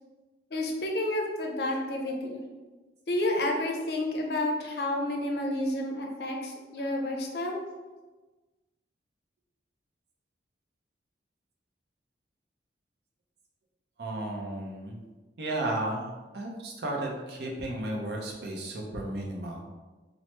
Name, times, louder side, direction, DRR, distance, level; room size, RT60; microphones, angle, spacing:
voice 1, 0.5-2.4 3.1-7.6, left 1 dB, 65° left, 1 dB, 0.5 m, -30 dB
voice 2, 14.0-15.0 15.4-16.1 16.3-19.6, right 1 dB, 65° right, -1 dB, 0.6 m, -33 dB
2.9 x 2.0 x 3.2 m, 1.2 s
head